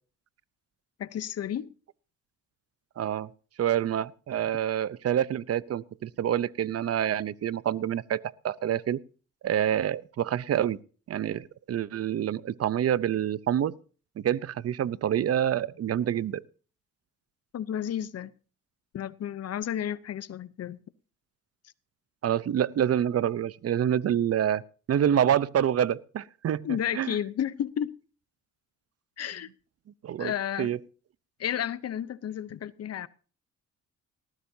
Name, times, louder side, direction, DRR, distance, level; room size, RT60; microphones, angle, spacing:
voice 1, 1.0-1.7 17.5-18.3 18.9-20.8 26.6-27.9 29.2-29.5 30.2-30.7 31.4-33.1, left 10 dB, 55° left, 0.8 m, -32 dB
voice 2, 3.0-3.3 3.6-9.0 9.4-10.8 11.1-13.7 14.2-16.4 22.2-24.6 24.9-26.6 26.9-27.2 30.0-30.3 30.6-30.8, right 10 dB, 55° right, 0.8 m, -27 dB
18.5 x 14.5 x 2.8 m
cardioid pair, 90°, 30 cm